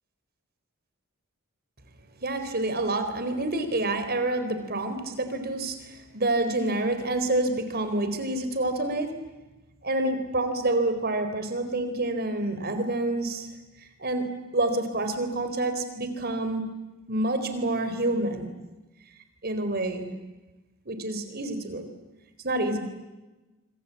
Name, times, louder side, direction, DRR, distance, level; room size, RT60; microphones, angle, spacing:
voice 1, 2.2-9.1 9.8-13.5 13.8-14.2 14.5-16.6 17.1-18.5 19.4-20.1 20.9-21.9 22.4-22.8, right 2 dB, 45° right, 9 dB, 4.0 m, -28 dB
26.0 x 25.5 x 8.4 m, 1.1 s
head